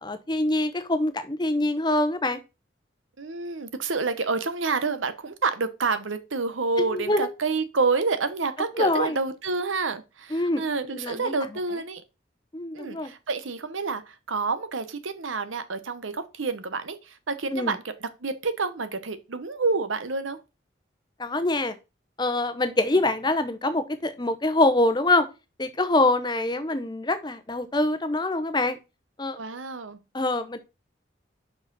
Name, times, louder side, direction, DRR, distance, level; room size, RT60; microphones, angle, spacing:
voice 1, 0.0-2.4 6.8-7.3 8.7-9.2 10.3-11.3 12.5-13.1 17.5-17.7 21.2-21.8 22.2-25.3 25.6-28.8 29.2-29.4 30.1-30.6, left 2 dB, 20° left, 0.7 m, -25 dB
voice 2, 3.2-12.0 12.7-20.4 29.4-30.0, right 4 dB, 85° right, 1.0 m, -28 dB
5.6 x 5.0 x 5.3 m
head